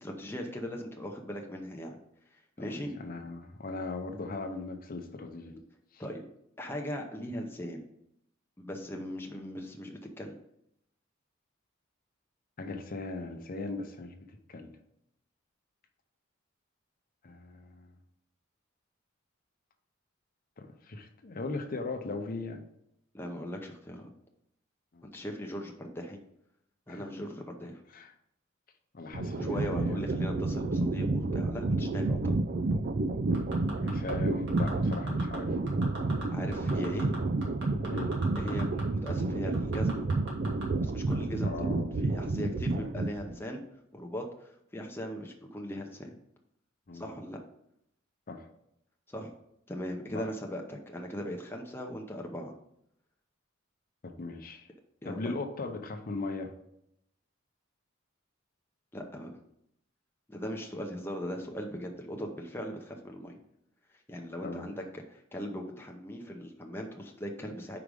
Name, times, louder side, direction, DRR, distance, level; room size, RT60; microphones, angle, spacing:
voice 1, 0.0-2.0 2.6-2.9 6.0-6.2 6.6-7.9 8.6-10.3 23.1-24.1 25.0-26.2 26.9-27.8 29.4-32.5 36.3-37.2 38.4-40.0 40.8-43.6 43.9-46.1 46.9-47.4 49.1-49.3 49.7-52.5 55.0-55.3 58.9-59.3 60.3-63.4 64.1-67.8, equal, 10° left, 1 dB, 0.6 m, -39 dB
voice 2, 2.7-5.6 5.9-6.0 12.6-14.7 17.2-17.9 20.6-22.6 24.9-25.1 26.9-27.0 27.9-28.1 28.9-30.1 33.8-35.6 37.9-38.1 41.4-41.9 46.9-47.1 48.3-48.4 50.1-50.3 54.0-54.7 55.0-56.5 64.4-64.7, left 3 dB, 45° left, 6 dB, 0.7 m, -39 dB
sound 1, 29.1-43.4, right 2 dB, 45° right, 0.4 m, -30 dB
sound 2, 33.3-34.1 34.5-35.4 35.7-36.2 36.5-38.8 39.1-39.2 39.5-40.6 41.1-41.2, right 2 dB, 60° right, 2.0 m, -41 dB
5.0 x 4.8 x 5.1 m, 0.76 s
head